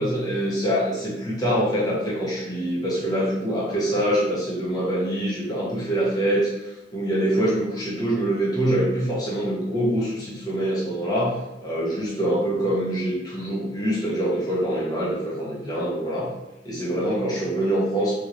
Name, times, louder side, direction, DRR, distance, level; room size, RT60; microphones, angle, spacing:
voice 1, 0.0-11.3 11.6-16.3 16.6-18.1, right 1 dB, 20° left, -6 dB, 0.9 m, -24 dB
3.7 x 3.0 x 2.5 m, 0.98 s
head